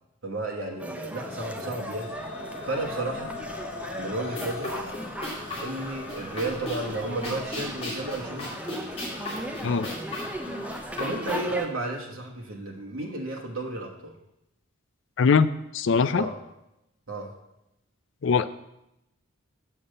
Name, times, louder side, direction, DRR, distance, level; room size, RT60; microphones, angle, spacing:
voice 1, 0.2-2.1 2.6-3.3 3.9-4.7 5.6-8.6 11.0-14.1 16.1-16.4 17.1-17.3, right 2 dB, 75° right, 0 dB, 1.3 m, -33 dB
sound 1, 0.8-11.7, right 1 dB, 5° right, 0.5 m, -38 dB
sound 2, 1.3-11.5, left 3 dB, 85° left, 1.3 m, -42 dB
sound 3, 4.3-11.7, left 1 dB, 30° left, 2.5 m, -37 dB
voice 2, 15.2-15.5 15.7-16.3 18.2-18.5, left 5 dB, 60° left, 14 dB, 0.4 m, -21 dB
7.0 x 5.7 x 6.5 m, 0.88 s
head